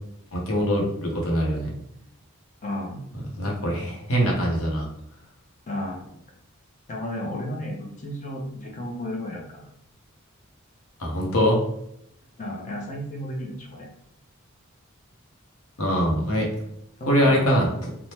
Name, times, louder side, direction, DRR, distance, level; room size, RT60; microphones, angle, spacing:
voice 1, 0.3-1.7 3.3-4.9 11.0-11.6 15.8-16.5 17.1-17.7, equal, 80° left, -1 dB, 0.8 m, -23 dB
voice 2, 2.6-3.0 5.7-6.1 6.9-9.7 12.4-13.9 17.0-17.6, left 1 dB, 35° left, -1 dB, 0.7 m, -33 dB
3.3 x 2.1 x 2.8 m, 0.75 s
head